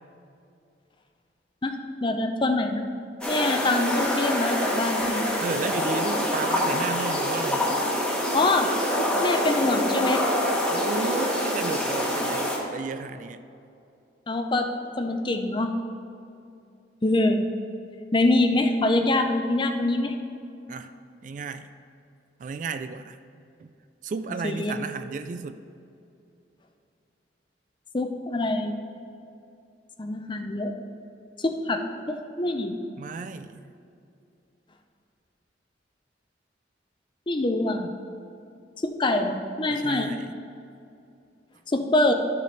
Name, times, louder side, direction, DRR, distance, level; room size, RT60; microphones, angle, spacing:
voice 1, 2.0-2.9 3.2-5.3 8.3-8.7 9.0-10.2 14.3-14.7 15.0-15.7 17.0-17.5 18.1-20.1 24.4-24.7 27.9-28.7 30.0-30.7 31.4-32.7 37.3-37.9 38.8-40.1 41.7-42.1, left 2 dB, 25° left, 6 dB, 0.5 m, -24 dB
sound 1, 3.2-12.6, equal, 5° left, 1.1 m, -26 dB
voice 2, 5.4-7.7 10.7-13.4 20.7-20.9 21.2-21.7 22.4-23.2 23.6-23.7 24.0-25.6 33.0-33.6 39.7-40.3, right 4 dB, 45° right, 10 dB, 0.3 m, -33 dB
12.5 x 6.7 x 3.2 m, 2.6 s
head